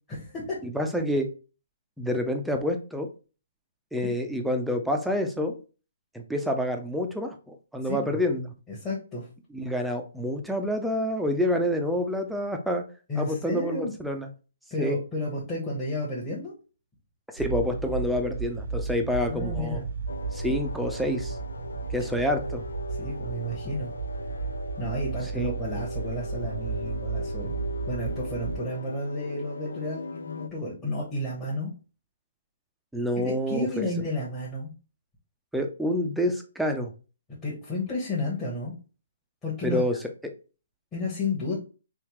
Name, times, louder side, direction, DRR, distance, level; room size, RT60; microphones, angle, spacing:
voice 1, 0.1-0.6 4.0-4.1 7.8-8.2 8.7-9.3 13.1-13.9 14.7-16.5 19.2-19.9 22.0-22.1 23.0-23.9 24.8-27.6 27.9-31.7 33.2-34.7 37.4-38.7 39.4-39.8 40.9-41.5, left 1 dB, 15° left, -8 dB, 1.0 m, -32 dB
voice 2, 0.6-1.3 2.0-3.1 3.9-5.6 6.1-8.5 9.5-12.9 13.2-14.3 14.8-15.0 17.3-19.8 20.3-21.4 21.9-22.6 25.3-25.5 32.9-33.9 35.5-36.9 39.6-40.0, equal, ahead, 3 dB, 0.5 m, -28 dB
sound 1, 17.4-28.6, right 5 dB, 70° right, 0.6 m, -34 dB
sound 2, 20.1-30.5, left 3 dB, 85° left, 0.3 m, -39 dB
3.4 x 2.7 x 3.0 m, 0.34 s
hypercardioid pair, 150°, 0 cm